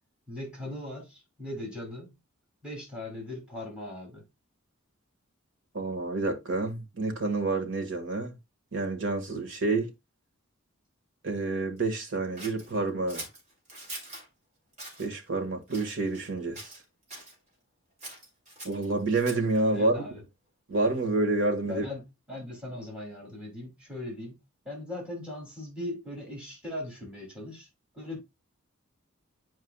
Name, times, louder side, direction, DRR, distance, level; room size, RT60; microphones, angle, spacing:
voice 1, 0.3-2.1 2.6-4.3 19.7-20.2 21.6-24.4 24.6-27.7 27.9-28.2, left 1 dB, 5° right, 2.5 m, -39 dB
voice 2, 5.7-8.3 8.7-9.9 11.2-13.2 15.0-16.7 18.6-20.0 20.7-21.8, right 2 dB, 60° right, 1.5 m, -28 dB
Scissors, 12.4-14.3 14.7-15.1 15.7-16.3 16.5-17.3 18.0-19.6, right 2 dB, 35° right, 2.5 m, -43 dB
9.4 x 4.8 x 2.2 m
head